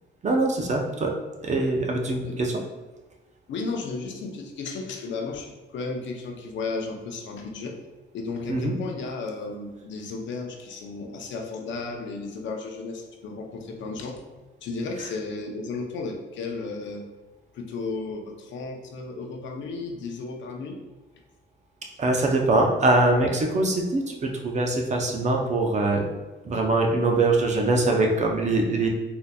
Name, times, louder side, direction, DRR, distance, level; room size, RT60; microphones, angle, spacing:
voice 1, 0.2-1.1 1.4-2.5 8.5-8.7 22.0-26.1 26.5-28.9, right 2 dB, 35° right, 1 dB, 0.6 m, -23 dB
voice 2, 3.5-7.8 8.1-17.0 17.5-20.8, left 3 dB, 70° left, 2 dB, 0.6 m, -34 dB
3.8 x 2.7 x 2.2 m, 1.2 s
cardioid pair, 90°, 20 cm